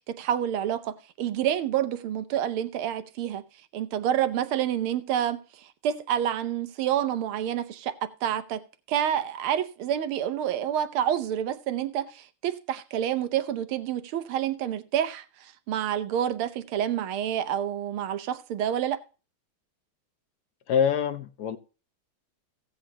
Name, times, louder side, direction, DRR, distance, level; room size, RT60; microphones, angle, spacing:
voice 1, 0.0-3.4 3.7-19.0, right 10 dB, 85° right, 1.7 m, -28 dB
voice 2, 20.7-21.6, left 7 dB, 65° left, 1.0 m, -25 dB
16.5 x 8.0 x 2.8 m
omnidirectional pair, 2.3 m